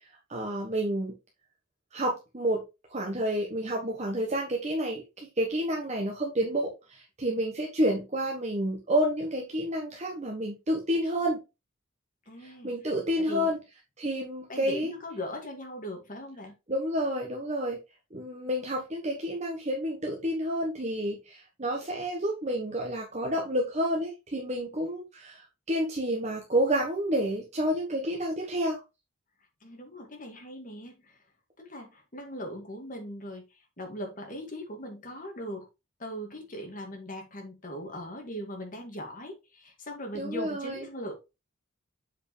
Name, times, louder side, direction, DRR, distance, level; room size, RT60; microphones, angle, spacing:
voice 1, 0.3-1.1 1.9-2.6 2.9-11.4 12.4-13.6 14.0-14.9 16.7-17.8 18.1-28.8 40.1-40.8, equal, 35° right, 0 dB, 1.2 m, -29 dB
voice 2, 12.3-12.7 13.2-13.6 14.5-16.5 29.6-31.2 31.6-35.7 36.0-41.1, equal, 40° left, 2 dB, 2.1 m, -40 dB
7.5 x 4.7 x 3.3 m, 0.26 s
head